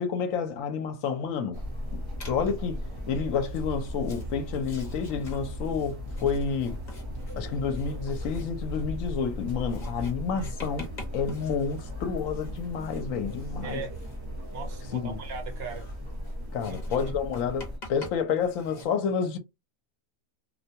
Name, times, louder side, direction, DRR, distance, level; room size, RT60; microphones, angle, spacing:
voice 1, 0.0-1.6 2.3-2.8 3.1-6.8 7.4-10.9 11.1-13.8 14.9-15.2 16.5-19.4, left 6 dB, 70° left, 1.0 m, -29 dB
sound 1, 1.5-17.8, left 1 dB, 25° right, 0.7 m, -37 dB
Writing, 2.2-2.7 3.4-18.9, left 1 dB, 35° left, 0.9 m, -48 dB
voice 2, 13.6-14.0 14.5-15.9 16.6-17.2 18.7-18.8, right 4 dB, 55° right, 0.8 m, -39 dB
2.5 x 2.2 x 2.7 m
omnidirectional pair, 1.5 m